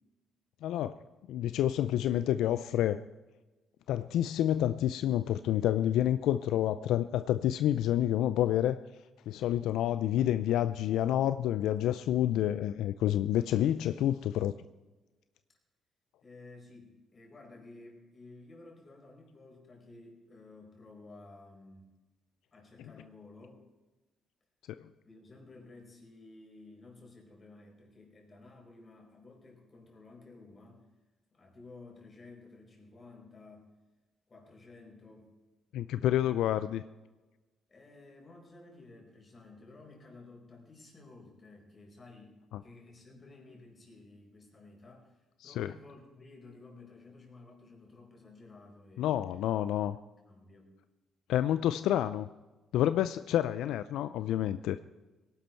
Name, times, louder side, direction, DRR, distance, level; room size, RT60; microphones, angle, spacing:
voice 1, 0.6-0.9 1.3-3.0 3.9-8.8 9.3-14.5 35.7-36.8 45.4-45.7 49.0-50.0 51.3-52.3 52.7-54.8, left 12 dB, 85° left, 13 dB, 0.4 m, -28 dB
voice 2, 16.2-21.9 22.5-23.6 25.0-30.8 31.3-33.7 34.3-35.3 37.7-49.2 50.1-50.7, left 3 dB, 35° left, 1 dB, 4.9 m, -54 dB
18.0 x 11.5 x 4.5 m, 1.1 s
cardioid pair, 90°, 0 cm